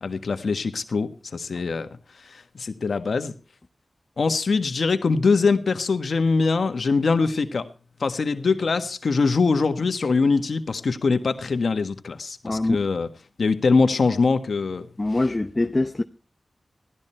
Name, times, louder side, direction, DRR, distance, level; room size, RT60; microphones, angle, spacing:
voice 1, 0.0-1.9 2.3-3.3 4.2-7.7 8.0-13.1 13.4-14.9, left 4 dB, 80° left, 1.4 m, -23 dB
voice 2, 12.4-12.8 15.0-16.0, left 2 dB, 35° left, 0.8 m, -23 dB
16.0 x 12.5 x 4.4 m
cardioid pair, 50°, 0 cm